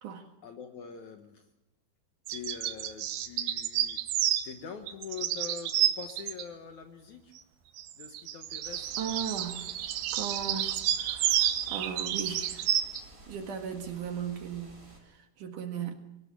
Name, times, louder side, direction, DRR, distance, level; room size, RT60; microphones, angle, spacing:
voice 1, 0.4-1.5 2.3-7.4 8.0-8.9, left 7 dB, 60° left, 6 dB, 2.2 m, -44 dB
sound 1, 2.3-4.5 4.9-6.4 7.8-13.0, right 11 dB, 75° right, 2.7 m, -30 dB
sound 2, 8.6-15.0, right 2 dB, 20° right, 6.4 m, -53 dB
voice 2, 9.0-9.7 10.1-12.8 13.3-15.9, right 7 dB, 60° right, 6 dB, 2.8 m, -37 dB
23.0 x 18.0 x 8.3 m, 0.92 s
omnidirectional pair, 4.6 m